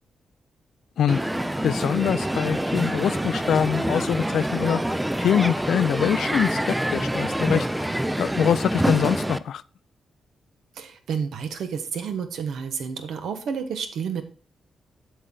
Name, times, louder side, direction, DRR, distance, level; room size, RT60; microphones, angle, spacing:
Crowd, 1.1-9.4, right 1 dB, 5° right, 0.3 m, -26 dB
voice 1, 1.6-4.8 5.2-7.9 8.2-9.6, left 9 dB, 75° left, 18 dB, 0.3 m, -24 dB
voice 2, 10.7-14.2, right 6 dB, 90° right, 8 dB, 1.1 m, -30 dB
7.9 x 6.4 x 3.8 m, 0.39 s
wide cardioid pair, 145°, 0 cm